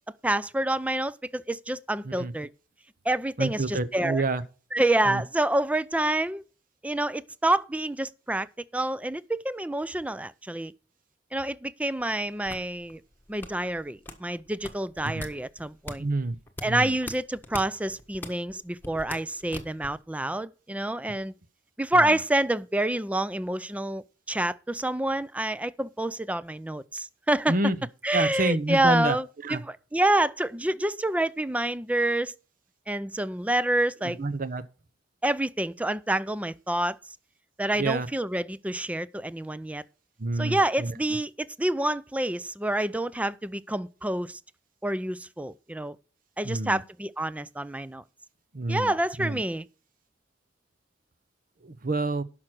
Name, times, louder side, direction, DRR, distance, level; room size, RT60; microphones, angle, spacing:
voice 1, 0.2-2.5 3.1-4.2 4.7-6.4 6.8-8.5 8.7-10.7 11.3-13.0 13.3-16.0 16.6-21.3 21.8-27.6 28.0-32.3 32.9-34.2 35.2-37.0 37.6-39.8 40.4-44.4 44.8-46.0 46.4-48.0 48.7-49.7, right 1 dB, 10° right, 0.4 m, -28 dB
voice 2, 3.4-4.4 5.1-5.2 15.1-15.2 16.0-16.3 16.6-16.9 22.0-22.1 27.5-27.8 28.1-29.2 29.4-29.6 34.0-34.6 37.8-38.1 40.2-40.9 46.4-46.8 48.5-48.9 49.2-49.4 51.6-52.2, right 2 dB, 50° right, 0.9 m, -28 dB
sound 1, 12.0-20.0, left 2 dB, 10° left, 1.4 m, -42 dB
11.0 x 5.9 x 6.2 m
head